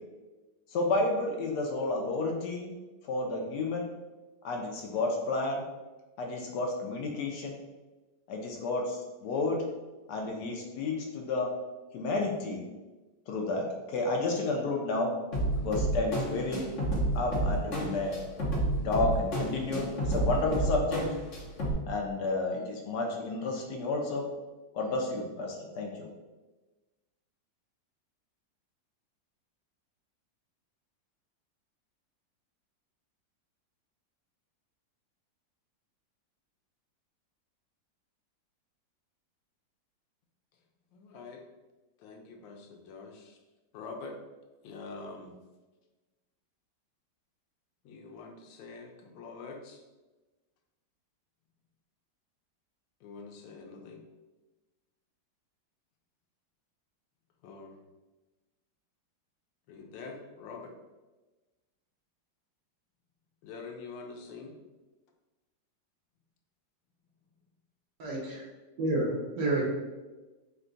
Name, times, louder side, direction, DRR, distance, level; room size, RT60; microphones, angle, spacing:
voice 1, 0.7-2.7 3.1-3.9 4.4-5.6 6.2-7.6 8.3-9.6 10.1-11.5 11.9-12.6 13.3-15.1 15.6-16.7 17.1-18.2 18.8-21.1 21.9-24.3 24.7-26.1, left 2 dB, 70° left, 1 dB, 1.1 m, -31 dB
sound 1, 15.3-21.7, right 1 dB, 50° left, 1.2 m, -30 dB
voice 2, 40.9-41.4 42.0-43.4 43.7-44.2 44.6-45.3 47.8-49.8 53.0-54.0 57.4-57.8 59.7-60.7 63.4-64.5, left 4 dB, 90° left, 2 dB, 1.4 m, -45 dB
voice 3, 68.0-68.4 68.8-69.6, right 2 dB, 70° right, -4 dB, 1.7 m, -29 dB
4.5 x 2.3 x 3.8 m, 1.2 s
omnidirectional pair, 2.0 m